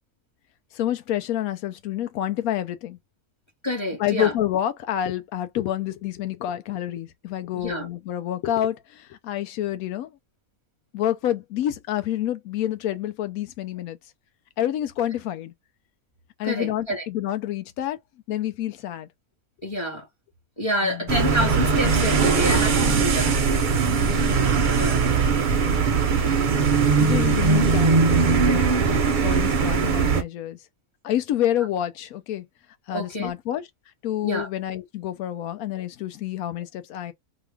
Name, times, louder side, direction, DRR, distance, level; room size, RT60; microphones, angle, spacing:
voice 1, 0.7-3.0 4.0-10.1 10.9-14.0 14.6-15.5 16.4-18.0 18.3-19.1 20.8-21.1 23.9-24.4 27.0-28.9 29.2-30.6 31.0-32.5 32.9-33.7 34.0-37.1, left 12 dB, 80° left, 1.1 m, -28 dB
voice 2, 3.6-4.3 7.6-7.9 16.4-17.0 19.6-20.1 20.6-23.4 24.2-25.1 32.9-33.3 34.2-34.5, equal, 20° left, 0.9 m, -28 dB
Traffic humming + Construction, 21.1-30.2, right 5 dB, 50° right, 0.6 m, -20 dB
3.0 x 2.2 x 3.3 m
omnidirectional pair, 1.5 m